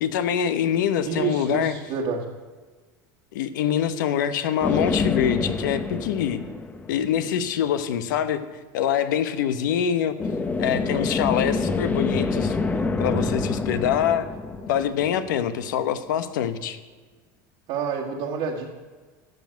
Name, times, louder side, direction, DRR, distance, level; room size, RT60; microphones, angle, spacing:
voice 1, 0.0-1.8 3.3-6.4 6.9-8.4 8.7-10.2 10.6-12.6 13.0-14.3 14.7-16.8, left 9 dB, 85° left, 12 dB, 1.0 m, -24 dB
voice 2, 1.1-2.2 17.7-18.7, right 6 dB, 60° right, -2 dB, 1.8 m, -28 dB
sound 1, 4.6-7.4 10.2-15.6, left 4 dB, 15° left, 0.7 m, -27 dB
13.5 x 5.3 x 9.0 m, 1.4 s
supercardioid pair, 130°, 10 cm